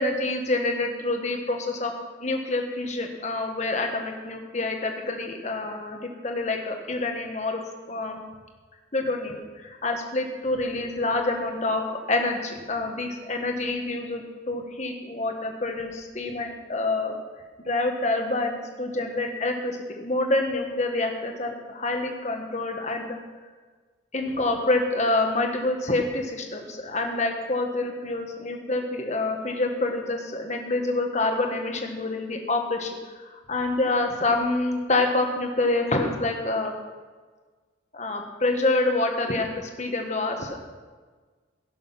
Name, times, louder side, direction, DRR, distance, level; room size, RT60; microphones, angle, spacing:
voice 1, 0.0-1.9 2.2-7.6 7.9-8.2 8.9-11.8 12.1-17.1 17.6-23.2 24.1-32.9 33.5-36.7 37.9-40.6, left 2 dB, 35° left, 3 dB, 1.5 m, -27 dB
17.0 x 6.6 x 5.9 m, 1.4 s
head